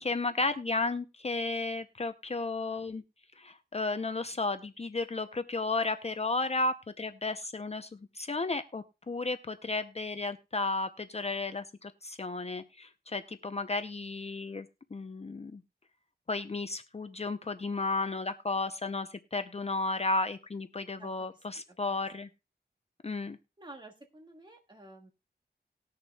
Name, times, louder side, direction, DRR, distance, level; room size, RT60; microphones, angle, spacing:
voice 1, 0.0-3.0 3.4-15.6 16.3-22.3 23.0-23.4, left 3 dB, 35° left, 10 dB, 0.6 m, -33 dB
voice 2, 23.6-25.1, right 2 dB, 25° right, 2 dB, 1.7 m, -50 dB
19.5 x 6.6 x 2.2 m, 0.28 s
wide cardioid pair, 105°, 18 cm